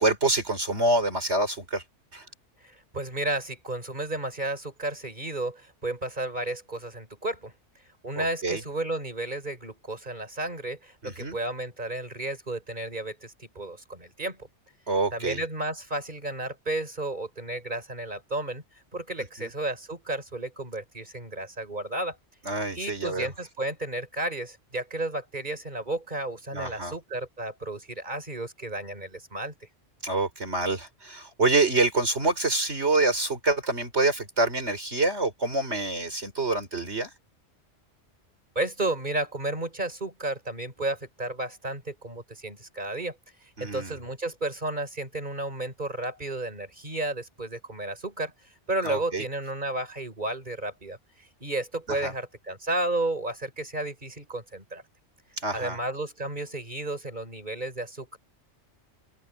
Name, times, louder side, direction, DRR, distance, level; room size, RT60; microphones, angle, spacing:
voice 1, 0.0-1.8 2.1-2.2 8.2-8.6 11.0-11.4 14.9-15.4 19.4-19.5 22.4-23.3 26.5-26.9 30.0-37.1 43.6-44.0 48.8-49.2 52.0-52.1 55.4-55.8, right 2 dB, 65° right, 4.9 m, -26 dB
voice 2, 2.6-7.5 8.0-14.4 15.1-18.6 18.9-22.2 22.7-29.5 38.6-43.2 43.6-48.3 48.7-51.0 51.4-54.8 55.5-58.2, right 2 dB, 40° right, 5.9 m, -32 dB
open air
omnidirectional pair, 1.2 m